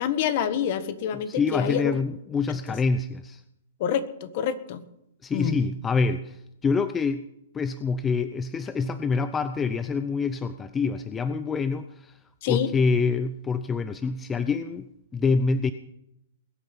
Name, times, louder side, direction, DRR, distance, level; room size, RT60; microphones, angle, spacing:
voice 1, 0.0-1.9 3.8-4.8 5.3-5.6 12.4-12.7, left 9 dB, 45° left, 12 dB, 1.5 m, -27 dB
voice 2, 1.3-3.4 5.2-7.2 7.5-12.2 12.5-15.7, left 4 dB, 15° left, 11 dB, 0.6 m, -26 dB
21.5 x 8.9 x 6.0 m, 0.80 s
hypercardioid pair, 145°, 0 cm